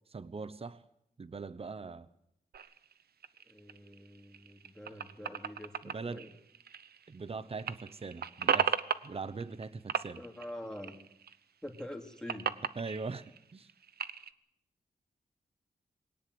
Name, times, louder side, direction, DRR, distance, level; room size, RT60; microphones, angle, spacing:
voice 1, 0.1-0.8 1.2-2.1 4.9-5.0 5.8-6.3 7.1-10.2 12.7-13.7, right 4 dB, 35° right, 1.0 m, -41 dB
sound 1, 2.5-7.3 7.5-9.6 9.9-11.4 11.7-14.3, right 7 dB, 75° right, 0.8 m, -36 dB
voice 2, 3.5-6.3 10.2-10.9 11.6-12.6, left 1 dB, 5° left, 3.0 m, -45 dB
21.0 x 18.0 x 8.0 m
wide cardioid pair, 100°, 16 cm